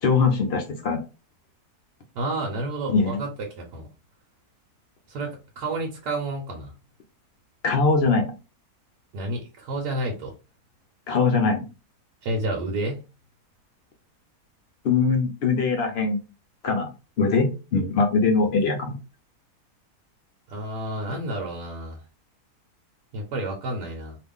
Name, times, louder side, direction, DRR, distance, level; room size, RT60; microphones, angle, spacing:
voice 1, 0.0-1.0 2.9-3.2 7.6-8.3 11.1-11.7 14.8-16.2 16.6-16.9 17.2-19.0, left 4 dB, 60° left, 4 dB, 0.6 m, -22 dB
voice 2, 2.1-3.9 5.1-6.7 9.1-10.3 12.2-13.0 20.5-22.0 23.1-24.2, right 2 dB, 80° right, 0 dB, 1.3 m, -30 dB
2.8 x 2.4 x 3.5 m, 0.30 s
omnidirectional pair, 1.7 m